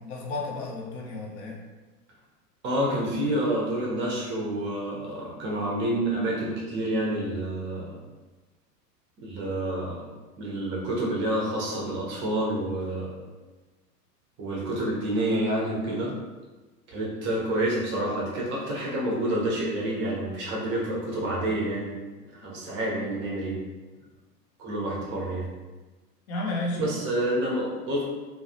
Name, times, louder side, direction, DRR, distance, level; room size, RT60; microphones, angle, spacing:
voice 1, 0.0-1.6 14.7-14.8 22.4-22.6 26.3-26.9, left 2 dB, 45° left, -1 dB, 0.6 m, -33 dB
voice 2, 2.6-8.0 9.2-10.0 10.4-13.1 14.4-16.1 16.9-21.9 22.3-23.6 24.6-25.5 26.8-28.0, right 1 dB, 25° right, -4 dB, 0.6 m, -28 dB
2.3 x 2.0 x 2.6 m, 1.2 s
figure-of-eight pair, 100°, 48 cm